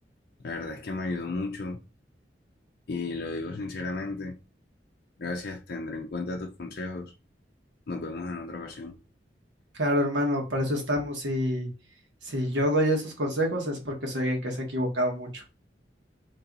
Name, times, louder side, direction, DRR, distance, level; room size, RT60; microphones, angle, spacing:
voice 1, 0.4-1.8 2.9-4.3 5.2-7.1 7.9-8.9, left 3 dB, 60° left, 0.5 m, -34 dB
voice 2, 9.8-11.7 12.2-15.4, equal, 90° right, 1.3 m, -27 dB
3.0 x 2.9 x 3.8 m
head